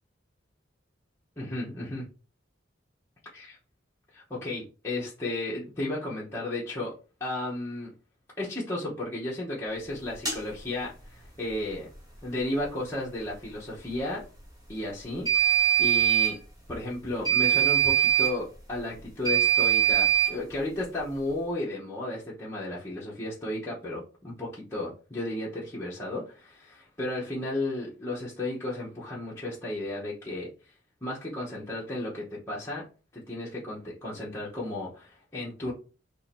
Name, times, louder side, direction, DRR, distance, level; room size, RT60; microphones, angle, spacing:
voice 1, 1.4-2.1 3.3-3.6 4.1-6.9 7.2-7.9 8.4-11.9 12.2-14.3 14.7-16.4 16.7-30.5 31.0-32.9 33.1-35.7, left 1 dB, 15° left, -7 dB, 0.9 m, -34 dB
sound 1, 10.3-10.4 15.3-16.3 17.2-18.3 19.2-20.3, right 10 dB, 20° right, 1.3 m, -22 dB
2.9 x 2.8 x 4.3 m, 0.34 s
head